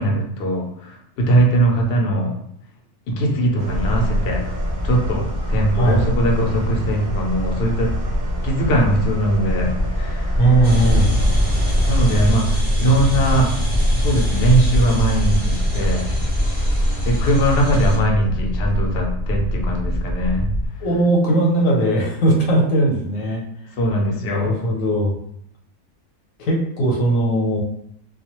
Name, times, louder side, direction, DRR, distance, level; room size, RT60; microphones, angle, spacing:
voice 1, 0.0-2.4 3.1-4.4 4.8-7.9 8.4-10.4 11.9-13.5 13.9-16.1 17.0-20.5 23.7-24.5, right 1 dB, 60° left, -1 dB, 0.8 m, -20 dB
sound 1, 3.6-20.7, equal, 25° left, 0.3 m, -24 dB
sound 2, 3.6-12.4, right 1 dB, 65° right, 0.7 m, -36 dB
voice 2, 10.4-11.1 20.8-23.4 24.3-25.1 26.4-27.6, right 1 dB, 75° left, -2 dB, 1.1 m, -18 dB
sound 3, 10.6-18.0, equal, 10° right, 0.7 m, -23 dB
2.3 x 2.3 x 2.9 m, 0.71 s
omnidirectional pair, 1.4 m